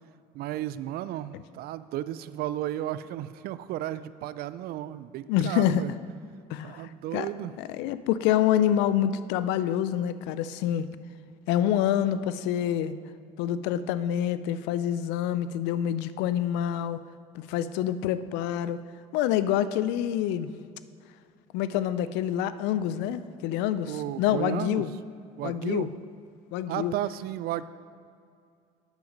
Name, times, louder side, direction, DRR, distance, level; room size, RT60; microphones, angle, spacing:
voice 1, 0.3-5.9 6.6-7.5 23.9-24.8 25.4-25.9 26.7-27.6, right 13 dB, 60° right, 15 dB, 0.4 m, -33 dB
voice 2, 5.3-5.8 6.5-7.3 7.6-10.9 11.5-12.9 13.4-17.0 17.3-18.8 19.1-20.5 21.5-24.9 25.4-25.9 26.5-26.9, left 10 dB, 75° left, 14 dB, 0.4 m, -27 dB
8.0 x 7.0 x 5.3 m, 2.3 s
supercardioid pair, 90°, 18 cm